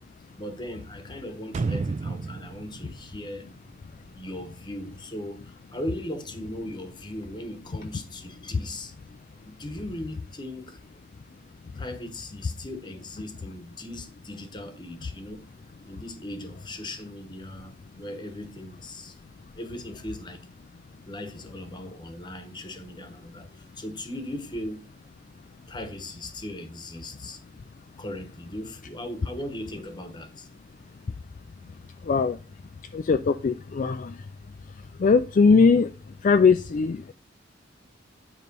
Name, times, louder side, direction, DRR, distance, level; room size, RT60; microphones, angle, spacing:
voice 1, 0.4-3.5 4.1-8.9 9.5-10.8 11.7-15.5 15.8-19.1 19.5-20.4 21.1-24.9 25.7-27.4 28.0-30.5, left 1 dB, 25° left, 1.1 m, -38 dB
sound 1, 1.5-4.4 4.7-4.8, right 4 dB, 35° right, 0.3 m, -32 dB
voice 2, 32.9-34.1 35.0-35.9 36.2-37.1, left 5 dB, 40° left, 0.4 m, -20 dB
9.3 x 3.2 x 5.3 m
head